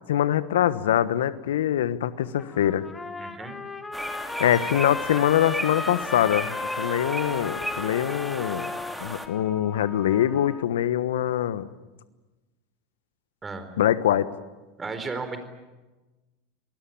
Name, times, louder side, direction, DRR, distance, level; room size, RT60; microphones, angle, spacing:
voice 1, 0.1-2.8 4.4-8.7 9.0-11.7 13.8-14.3, left 11 dB, 75° left, 15 dB, 1.2 m, -24 dB
Trumpet, 2.2-10.6, left 3 dB, 15° left, 2.2 m, -35 dB
voice 2, 3.2-3.6 13.4-13.7 14.8-15.5, right 4 dB, 20° right, 9 dB, 4.3 m, -34 dB
sound 1, 3.9-9.3, right 1 dB, 5° right, 2.8 m, -35 dB
27.0 x 20.0 x 8.8 m, 1.1 s
hypercardioid pair, 90°, 0 cm